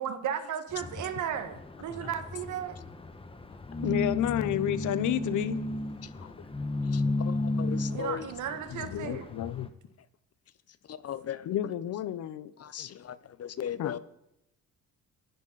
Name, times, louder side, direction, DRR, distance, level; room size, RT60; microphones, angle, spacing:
voice 1, 0.0-2.8 7.9-9.3, right 9 dB, 80° right, 2.0 m, -35 dB
sound 1, 0.7-9.7, left 2 dB, 20° left, 1.5 m, -34 dB
voice 2, 3.8-5.6 8.8-9.7 11.5-12.5 12.8-12.9 13.8-13.9, left 11 dB, 75° left, 1.0 m, -30 dB
voice 3, 6.0-6.5 6.9-8.3 10.9-11.7 12.6-14.0, left 9 dB, 55° left, 1.0 m, -38 dB
28.0 x 10.5 x 4.2 m
cardioid pair, 90°, 30 cm